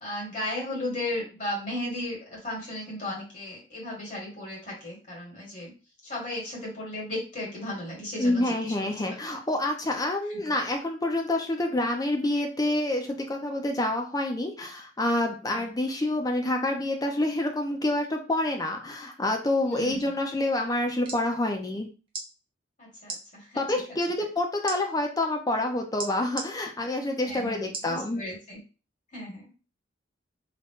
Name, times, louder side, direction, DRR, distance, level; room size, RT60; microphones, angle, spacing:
voice 1, 0.0-5.7 6.0-9.2 10.3-10.4 15.5-15.7 19.6-20.0 22.8-23.8 27.2-28.6 29.1-29.5, left 1 dB, 40° left, -4 dB, 1.8 m, -35 dB
voice 2, 8.2-21.9 23.6-28.2, left 1 dB, 20° left, 3 dB, 0.5 m, -27 dB
sound 1, 20.8-21.2 22.1-22.3 23.0-23.2 24.7-24.8 26.0-26.5 27.7-27.9 28.5-28.6, right 3 dB, 25° right, 0.8 m, -35 dB
3.8 x 2.2 x 3.6 m, 0.33 s
head